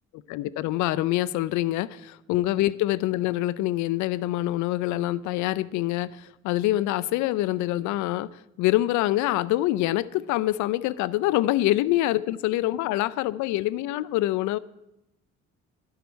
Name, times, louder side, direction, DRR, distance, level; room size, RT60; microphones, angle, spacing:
voice 1, 0.3-14.6, left 16 dB, 80° left, 0.5 m, -25 dB
11.5 x 6.4 x 9.0 m
supercardioid pair, 75°, 29 cm